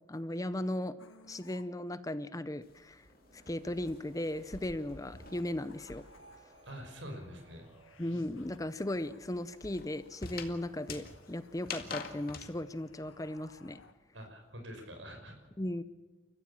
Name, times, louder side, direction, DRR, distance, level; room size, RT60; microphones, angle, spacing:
voice 1, 0.1-1.0 1.3-3.1 3.5-6.0 8.0-13.8 15.6-15.8, left 1 dB, 15° left, 13 dB, 0.6 m, -37 dB
Space Radio Interference, 1.0-1.6 4.9-13.9, left 2 dB, 75° left, 1.6 m, -60 dB
sound 1, 1.9-8.9, right 1 dB, 30° right, 3.0 m, -64 dB
sound 2, 2.6-6.4 6.6-12.5, left 5 dB, 50° left, 2.1 m, -47 dB
voice 2, 6.6-7.7 14.1-15.4, equal, 65° right, 5 dB, 5.7 m, -45 dB
30.0 x 14.5 x 7.2 m, 1.3 s
head